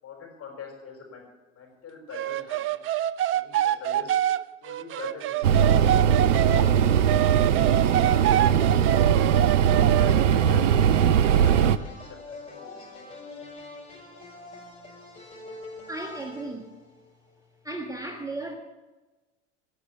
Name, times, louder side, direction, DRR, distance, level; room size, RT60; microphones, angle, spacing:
voice 1, 0.0-1.3 1.5-2.8 3.3-4.1 4.6-7.5 7.8-8.3 8.8-9.2 9.5-10.7 11.1-12.9, left 5 dB, 40° left, 0 dB, 5.7 m, -43 dB
sound 1, 2.1-6.7 7.1-10.3, right 12 dB, 35° right, 0.5 m, -26 dB
sound 2, 5.4-11.8, right 8 dB, 85° right, 0.5 m, -20 dB
sound 3, 10.3-17.3, left 2 dB, 15° left, 5.6 m, -45 dB
voice 2, 15.9-16.7 17.6-18.6, right 2 dB, 10° right, 3 dB, 1.5 m, -35 dB
18.5 x 6.8 x 8.3 m, 1.2 s
hypercardioid pair, 70°, 37 cm